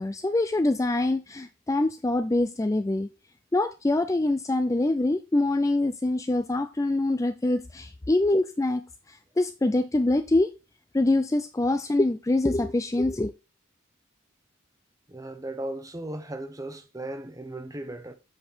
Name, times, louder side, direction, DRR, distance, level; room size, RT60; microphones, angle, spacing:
voice 1, 0.0-3.1 3.5-8.8 9.4-10.5 10.9-13.3, left 2 dB, 15° left, 0.4 m, -24 dB
voice 2, 15.1-18.1, right 1 dB, 15° right, 0.8 m, -36 dB
7.9 x 5.3 x 4.4 m
head